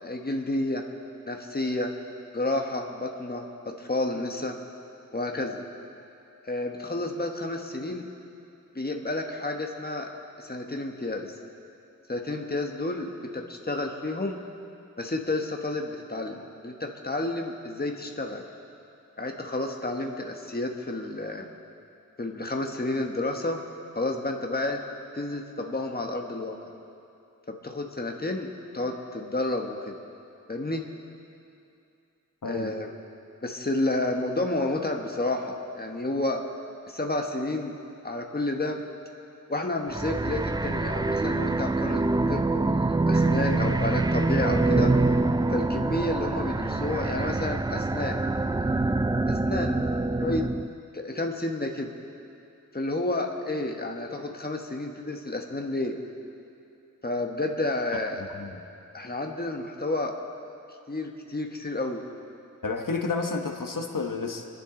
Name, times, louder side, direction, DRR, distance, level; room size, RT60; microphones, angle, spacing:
voice 1, 0.0-0.8 1.2-1.9 2.3-4.6 5.1-5.6 6.4-8.1 8.7-10.1 10.4-11.3 12.1-14.4 15.0-18.4 19.2-21.5 22.2-23.6 23.9-24.8 25.1-26.6 27.5-30.0 30.5-30.9 32.4-32.9 33.4-36.4 36.9-37.7 38.0-38.8 39.5-44.9 45.5-48.3 49.3-49.8 50.2-50.5 50.9-51.9 52.7-56.0 57.0-58.3 58.9-60.2 60.9-62.0, left 2 dB, 30° left, 2 dB, 1.3 m, -30 dB
voice 2, 32.4-32.7 58.3-58.6 62.6-64.5, left 4 dB, 80° left, 3 dB, 1.1 m, -30 dB
sound 1, 39.9-50.7, right 2 dB, 15° right, 0.3 m, -25 dB
28.5 x 10.0 x 3.9 m, 2.7 s
wide cardioid pair, 60°, 32 cm